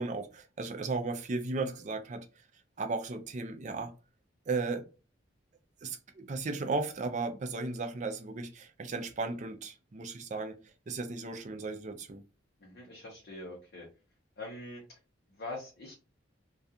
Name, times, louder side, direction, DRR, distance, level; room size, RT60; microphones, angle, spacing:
voice 1, 0.0-2.3 2.8-3.9 4.5-4.8 5.8-10.6 10.9-12.2, right 3 dB, 40° right, 0.4 m, -35 dB
voice 2, 12.6-13.9 14.4-15.0 15.4-15.9, left 2 dB, 55° left, 0.7 m, -43 dB
2.4 x 2.3 x 2.7 m
head